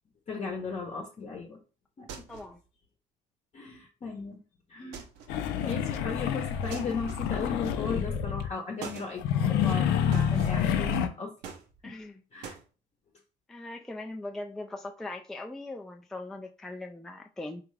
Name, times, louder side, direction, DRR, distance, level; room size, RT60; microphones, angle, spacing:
voice 1, 0.3-1.6 2.0-2.1 3.5-4.4 4.7-5.0 5.6-11.3 12.3-12.6, left 4 dB, 40° left, 0 dB, 0.8 m, -36 dB
sound 1, 2.1-2.6 4.9-5.4 6.7-7.5 8.8-9.1 10.1-10.7 11.4-12.0 12.4-12.7, right 6 dB, 85° right, 0.7 m, -43 dB
voice 2, 2.3-2.6 11.8-12.2 13.5-17.6, left 2 dB, ahead, 4 dB, 0.3 m, -40 dB
sound 2, 5.3-8.5 9.2-11.1, left 8 dB, 90° left, 0.4 m, -28 dB
3.5 x 2.4 x 3.2 m, 0.34 s
cardioid pair, 110°, 17 cm